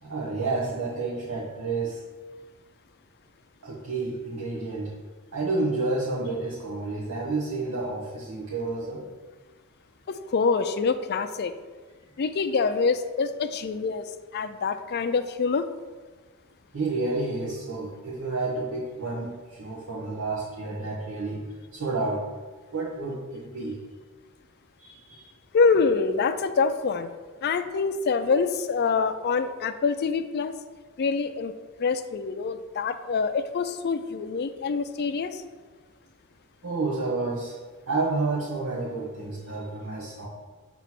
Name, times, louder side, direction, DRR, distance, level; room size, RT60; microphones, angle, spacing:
voice 1, 0.0-2.0 3.6-4.9 5.3-9.1 16.7-21.4 21.7-22.4 22.7-23.8 24.8-25.3 36.6-37.5 37.9-40.3, right 3 dB, 85° right, -6 dB, 1.1 m, -30 dB
voice 2, 10.1-11.5 12.2-15.7 25.5-27.1 27.4-30.5 31.0-31.5 31.8-35.4, left 5 dB, 50° left, 10 dB, 0.4 m, -25 dB
7.3 x 3.0 x 5.9 m, 1.4 s
head